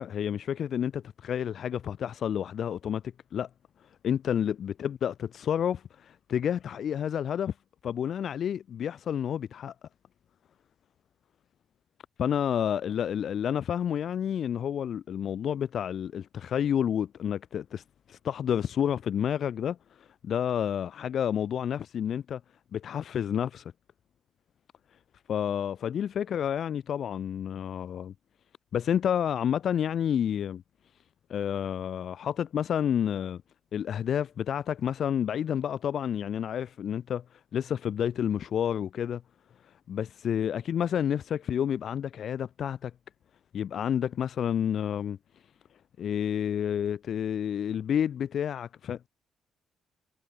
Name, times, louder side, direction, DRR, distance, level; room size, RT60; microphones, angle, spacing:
voice 1, 0.0-3.0 3.3-3.5 4.0-7.5 7.8-9.7 12.2-17.8 18.1-19.8 20.2-22.4 22.7-23.7 25.3-28.1 28.7-30.6 31.3-33.4 33.7-37.2 37.5-39.2 39.9-42.9 43.5-45.2 46.0-49.1, left 9 dB, 60° left, 3.2 m, -29 dB
cardioid pair, 90°, 0 cm